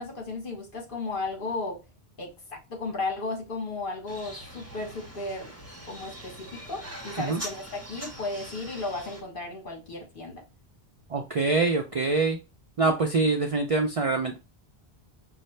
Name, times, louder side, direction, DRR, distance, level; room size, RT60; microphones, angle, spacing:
voice 1, 0.0-1.8 2.2-5.5 5.8-10.4, left 3 dB, 55° left, 1.4 m, -35 dB
sound 1, 4.1-9.2, right 1 dB, 15° right, 1.0 m, -42 dB
voice 2, 11.1-12.4 12.8-14.4, right 3 dB, 50° right, 0.4 m, -24 dB
5.4 x 2.0 x 3.1 m
omnidirectional pair, 1.1 m